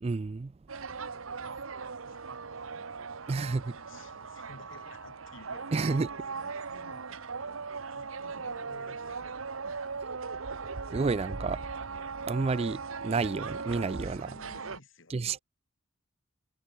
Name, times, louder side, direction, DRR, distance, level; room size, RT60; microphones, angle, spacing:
voice 1, 0.0-0.5 3.3-3.7 5.7-6.1 10.9-11.6 12.3-14.3 15.1-15.4, right 4 dB, 30° right, 0.3 m, -30 dB
sound 1, 0.7-14.8, right 4 dB, 85° right, 1.1 m, -39 dB
voice 2, 1.1-3.3 3.6-10.0 13.9-15.4, left 2 dB, 70° left, 4.3 m, -56 dB
head